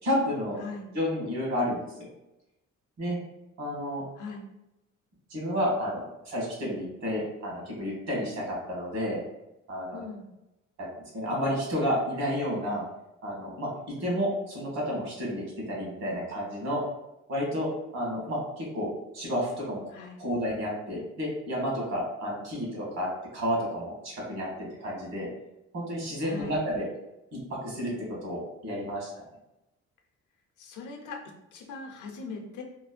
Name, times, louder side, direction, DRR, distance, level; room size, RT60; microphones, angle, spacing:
voice 1, 0.0-0.6 0.9-1.9 3.0-3.2 3.6-4.0 5.3-9.2 9.7-10.0 10.8-10.9 11.1-12.8 13.2-16.8 17.3-19.8 20.2-23.1 23.3-25.3 25.7-26.9 27.3-29.1, equal, 65° right, -3 dB, 1.5 m, -31 dB
voice 2, 9.9-10.3 14.2-14.3 19.9-20.2 26.2-26.6 30.6-31.2 31.5-32.6, left 4 dB, 80° left, 2 dB, 0.6 m, -40 dB
3.1 x 2.1 x 2.4 m, 0.92 s
cardioid pair, 90°, 30 cm